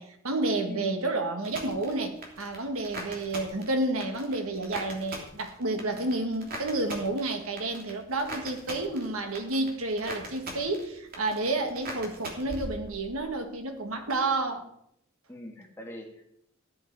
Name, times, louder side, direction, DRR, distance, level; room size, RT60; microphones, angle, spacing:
voice 1, 0.0-14.7, right 2 dB, 80° right, 5 dB, 1.8 m, -30 dB
voice 2, 0.7-1.1 5.6-6.1 15.3-16.3, left 1 dB, 10° left, 0 dB, 1.9 m, -43 dB
sound 1, 1.4-13.4 13.6-14.2, right 1 dB, 40° right, 3.1 m, -42 dB
15.0 x 10.5 x 4.7 m, 0.75 s
head